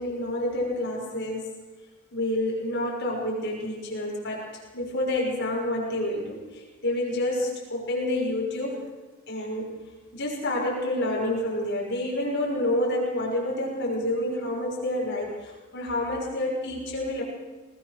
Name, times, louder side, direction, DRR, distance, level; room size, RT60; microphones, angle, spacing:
voice 1, 0.0-1.5 2.1-4.4 4.7-8.8 9.3-9.7 10.1-17.2, left 1 dB, 55° left, -3 dB, 6.2 m, -28 dB
21.5 x 20.0 x 6.8 m, 1.3 s
head